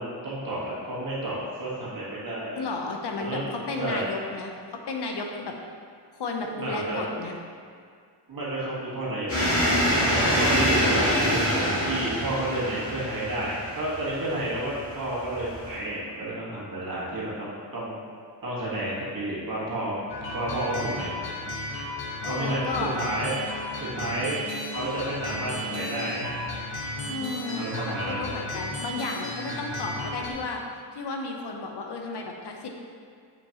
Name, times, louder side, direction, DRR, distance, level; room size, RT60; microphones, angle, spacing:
voice 1, 0.0-2.6 3.2-4.1 6.5-7.0 8.3-9.6 10.0-18.0 18.4-21.1 22.3-23.3 23.8-24.4 24.7-26.3 27.6-28.3, right 1 dB, 50° right, -7 dB, 1.6 m, -31 dB
voice 2, 2.6-5.6 6.1-7.4 22.2-23.0 27.1-30.6 30.9-32.7, left 3 dB, 65° left, 2 dB, 0.8 m, -33 dB
sound 1, 9.3-15.7, equal, 30° left, 1.7 m, -25 dB
sound 2, 20.1-30.3, left 1 dB, 85° left, 1.1 m, -34 dB
7.2 x 6.0 x 2.9 m, 2.2 s
wide cardioid pair, 165°, 43 cm